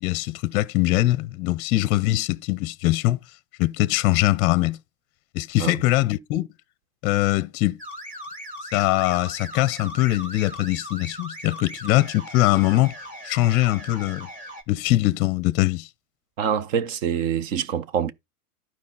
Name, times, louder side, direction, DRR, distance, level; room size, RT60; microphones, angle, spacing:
voice 1, 0.0-3.2 3.6-4.8 5.3-6.5 7.0-7.8 8.7-12.9 13.2-14.3 14.7-15.9, left 17 dB, 30° left, 0.6 m, -22 dB
sound 1, 7.8-14.6, equal, 15° right, 2.1 m, -39 dB
voice 2, 16.4-18.1, right 8 dB, 55° right, 1.0 m, -25 dB
11.5 x 4.7 x 5.3 m
hypercardioid pair, 120°, 47 cm